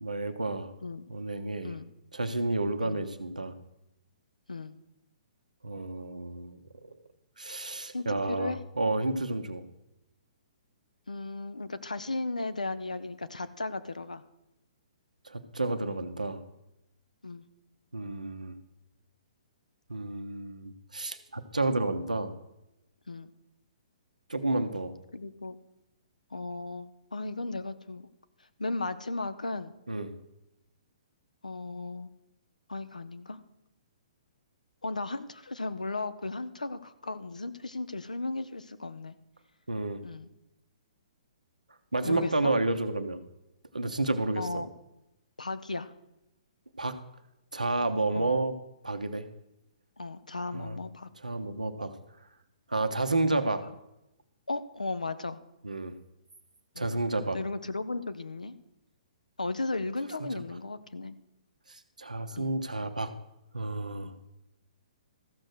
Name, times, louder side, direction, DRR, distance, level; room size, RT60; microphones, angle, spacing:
voice 1, 0.0-0.7 1.1-1.7 2.1-3.5 5.6-6.6 7.4-9.6 15.2-16.4 17.9-18.5 19.9-22.3 24.3-24.9 29.9-30.1 39.7-40.0 41.9-43.2 43.7-44.6 46.8-47.0 47.5-48.5 48.8-49.3 50.5-50.8 51.2-51.9 52.7-53.6 55.6-55.9 56.8-57.4 60.2-60.3 61.7-63.1 63.5-64.1, right 2 dB, 85° right, 8 dB, 1.1 m, -30 dB
voice 2, 7.9-8.6 11.1-14.2 17.2-17.4 23.1-23.3 25.1-25.6 26.3-28.1 28.6-29.7 31.4-32.1 32.7-33.4 34.8-39.2 40.0-40.3 42.0-42.6 44.4-44.7 45.4-45.9 48.1-48.3 50.0-51.1 54.5-55.4 56.7-58.5 59.4-61.2 62.3-62.6, left 3 dB, 85° left, 12 dB, 0.8 m, -35 dB
14.0 x 6.4 x 6.6 m, 0.90 s
figure-of-eight pair, 125°, 4 cm